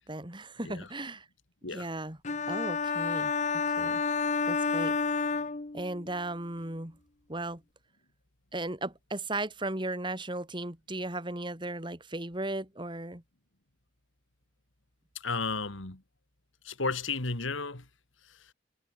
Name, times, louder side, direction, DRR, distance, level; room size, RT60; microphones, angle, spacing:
voice 1, 0.1-1.3 1.7-2.2 2.5-3.3 3.7-4.0 4.5-5.0 5.7-7.0 7.3-7.6 8.5-13.2, right 2 dB, 25° right, 2.3 m, -36 dB
sound 1, 2.2-6.1, left 4 dB, 40° left, 0.9 m, -30 dB
voice 2, 15.1-16.0 16.6-17.9 18.3-18.5, left 4 dB, 85° left, 2.6 m, -33 dB
head